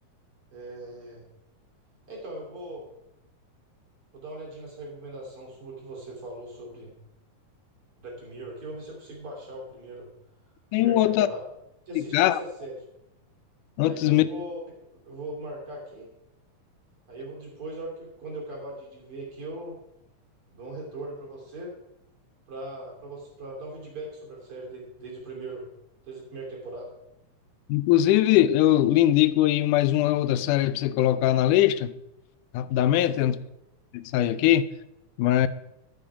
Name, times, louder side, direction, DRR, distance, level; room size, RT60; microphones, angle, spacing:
voice 1, 0.5-1.2 2.1-2.9 4.1-6.9 8.0-10.1 10.8-11.4 11.9-12.7 13.8-14.6 15.0-16.1 17.1-19.8 20.5-21.8 22.5-25.7 26.1-26.9 33.1-33.3, right 1 dB, 45° right, 3.6 m, -39 dB
voice 2, 10.7-11.3 12.0-12.4 13.8-14.3 27.7-31.9 32.5-33.4 33.9-34.7 35.2-35.5, left 13 dB, 85° left, 2.1 m, -21 dB
13.5 x 7.0 x 4.8 m
omnidirectional pair, 3.6 m